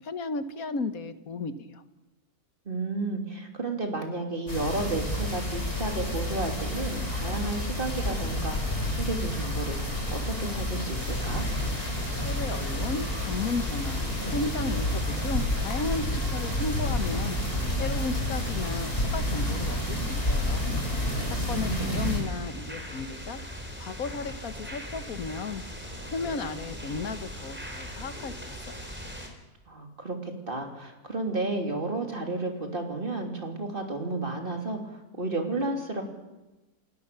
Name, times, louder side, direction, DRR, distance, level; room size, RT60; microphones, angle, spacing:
voice 1, 0.0-1.8 12.2-14.0 14.3-17.4 17.8-20.6 21.3-23.4 23.8-25.6 26.0-28.9, left 4 dB, 65° left, 11 dB, 1.7 m, -34 dB
voice 2, 2.6-9.8 10.1-11.4 21.4-22.1 29.7-36.0, right 2 dB, 35° right, 3 dB, 3.3 m, -32 dB
sound 1, 4.5-22.2, left 1 dB, 35° left, 5.8 m, -30 dB
sound 2, 11.0-29.3, equal, 5° right, 3.7 m, -40 dB
29.0 x 18.5 x 6.9 m, 1.1 s
omnidirectional pair, 1.6 m